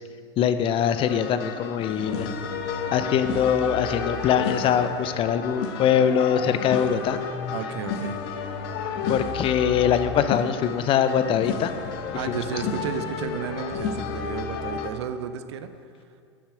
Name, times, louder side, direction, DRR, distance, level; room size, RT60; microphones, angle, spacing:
voice 1, 0.4-2.3 2.9-7.2 9.1-11.7 12.3-12.4, left 8 dB, 35° left, 11 dB, 0.6 m, -23 dB
sound 1, 1.1-14.9, left 6 dB, 55° left, 0.9 m, -32 dB
voice 2, 7.5-8.2 12.1-15.7, right 8 dB, 70° right, 10 dB, 0.7 m, -33 dB
11.5 x 7.3 x 4.9 m, 2.3 s
hypercardioid pair, 90°, 15 cm